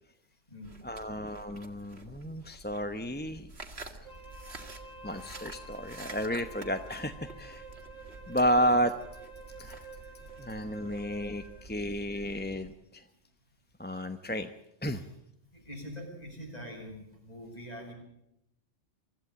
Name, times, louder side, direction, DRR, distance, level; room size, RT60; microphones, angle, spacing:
sound 1, 0.6-12.7, right 3 dB, 60° right, 2.4 m, -49 dB
voice 1, 0.8-3.5 5.0-7.6 8.3-8.9 9.6-9.8 10.4-13.0 13.8-14.5 14.8-15.0, equal, 10° left, 8 dB, 0.9 m, -32 dB
Wind instrument woodwind instrument, 4.0-11.7, right 2 dB, 85° right, 2.7 m, -49 dB
voice 2, 15.5-17.9, equal, 30° left, 0 dB, 8.0 m, -44 dB
25.0 x 14.5 x 8.7 m, 0.82 s
omnidirectional pair, 1.3 m